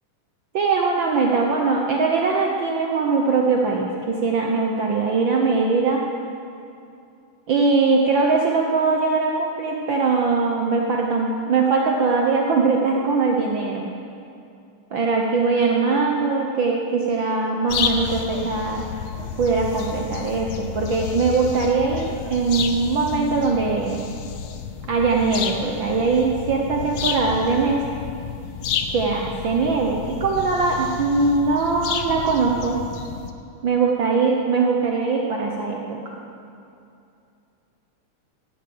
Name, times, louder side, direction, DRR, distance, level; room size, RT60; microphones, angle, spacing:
voice 1, 0.5-6.0 7.5-13.9 14.9-18.9 19.4-24.0 24.9-27.9 28.9-32.8 33.6-36.2, right 4 dB, 80° right, 0 dB, 1.0 m, -21 dB
sound 1, 17.7-33.3, left 7 dB, 85° left, 1.1 m, -31 dB
15.0 x 11.0 x 7.8 m, 2.6 s
omnidirectional pair, 3.6 m